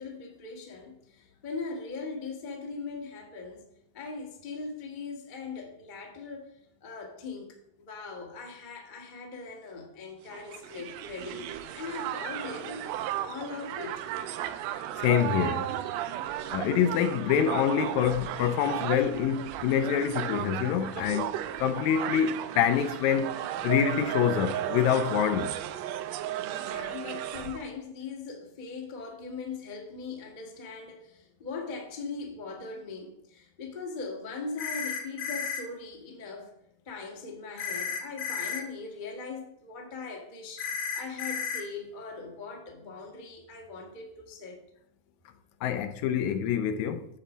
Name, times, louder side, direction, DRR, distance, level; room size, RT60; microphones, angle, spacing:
voice 1, 0.0-3.7 3.9-12.8 13.2-14.0 26.6-36.5 36.8-44.6, left 4 dB, 40° left, 0.7 m, -40 dB
Crowd, 10.3-27.7, right 11 dB, 80° right, 1.6 m, -35 dB
voice 2, 15.0-15.7 16.5-25.6 45.6-47.1, left 8 dB, 80° left, 1.9 m, -26 dB
sound 1, 34.6-35.6 37.6-38.6 40.6-41.6, left 6 dB, 55° left, 1.6 m, -33 dB
8.4 x 4.1 x 7.0 m
omnidirectional pair, 3.4 m